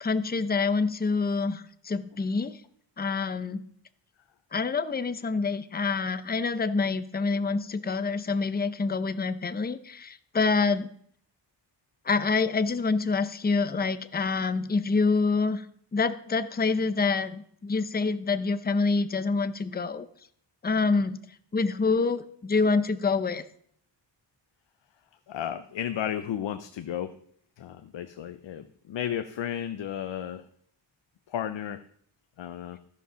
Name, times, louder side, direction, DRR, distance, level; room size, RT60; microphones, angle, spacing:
voice 1, 0.0-2.6 3.0-3.6 4.5-10.9 12.0-15.7 15.9-20.1 20.6-21.2 21.5-23.4, left 4 dB, 20° left, 12 dB, 0.6 m, -26 dB
voice 2, 25.3-27.1 27.6-30.5 31.3-31.8 32.4-32.8, left 10 dB, 85° left, 10 dB, 0.6 m, -33 dB
13.5 x 5.2 x 5.6 m, 0.63 s
cardioid pair, 75°, 43 cm